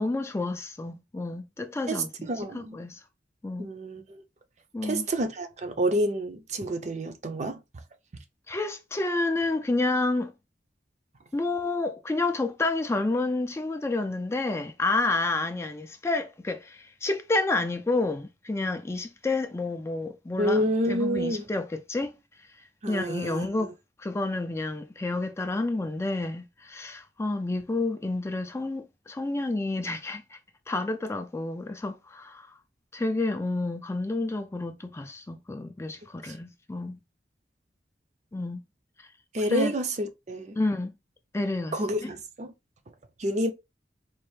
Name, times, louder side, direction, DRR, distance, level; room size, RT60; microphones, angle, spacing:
voice 1, 0.0-3.0 3.4-3.7 4.7-5.1 8.5-10.3 11.3-22.2 22.6-23.7 24.0-30.4 30.7-32.6 32.9-37.0 38.3-38.6 39.0-39.1 39.4-39.7 40.6-40.9 41.3-41.7 42.0-42.1, left 2 dB, 15° left, 0.3 m, -30 dB
voice 2, 1.9-2.8 3.6-4.2 4.8-7.6 20.4-21.5 22.8-23.5 36.3-36.4 39.3-40.6 41.7-42.5 43.2-43.5, right 1 dB, 40° right, 0.5 m, -29 dB
4.2 x 2.5 x 3.1 m
head